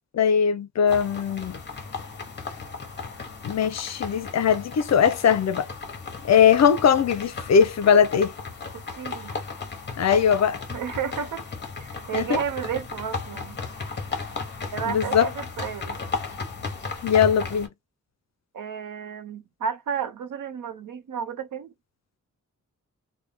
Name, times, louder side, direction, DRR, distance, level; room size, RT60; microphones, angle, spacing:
voice 1, 0.1-1.6 3.4-5.7 6.2-8.3 10.0-10.6 12.1-12.4 14.9-15.3 17.0-17.7, left 7 dB, 55° left, 0.5 m, -20 dB
sound 1, 0.9-17.7, left 4 dB, 35° left, 0.8 m, -35 dB
voice 2, 8.7-9.4 10.7-11.4 11.8-13.6 14.7-16.0 18.5-21.7, right 7 dB, 80° right, 0.7 m, -32 dB
3.3 x 2.2 x 3.4 m
wide cardioid pair, 160°, 32 cm